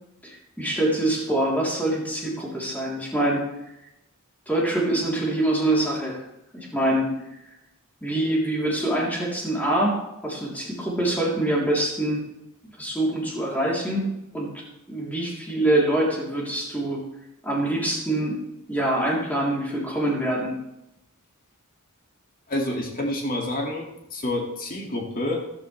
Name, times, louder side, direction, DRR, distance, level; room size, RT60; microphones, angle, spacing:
voice 1, 0.2-3.4 4.5-6.2 6.5-7.1 8.0-12.2 12.8-14.1 14.3-14.5 14.9-17.0 17.4-18.4 18.7-20.6, right 1 dB, 10° left, -4 dB, 3.5 m, -25 dB
voice 2, 22.5-25.4, left 1 dB, 40° left, 0 dB, 2.2 m, -28 dB
13.5 x 13.0 x 3.4 m, 0.86 s
head